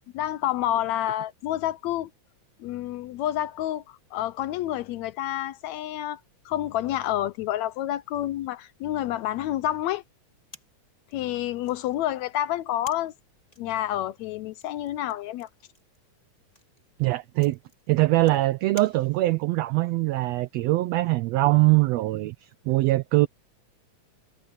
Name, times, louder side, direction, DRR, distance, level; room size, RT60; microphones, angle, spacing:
voice 1, 0.1-2.1 2.6-6.2 6.4-10.0 11.1-13.1 13.6-15.5, left 13 dB, 75° left, 1.7 m, -29 dB
sound 1, 10.5-19.5, left 2 dB, 15° left, 2.0 m, -53 dB
voice 2, 17.0-17.6 17.9-23.3, right 19 dB, 75° right, 1.6 m, -22 dB
omnidirectional pair, 3.5 m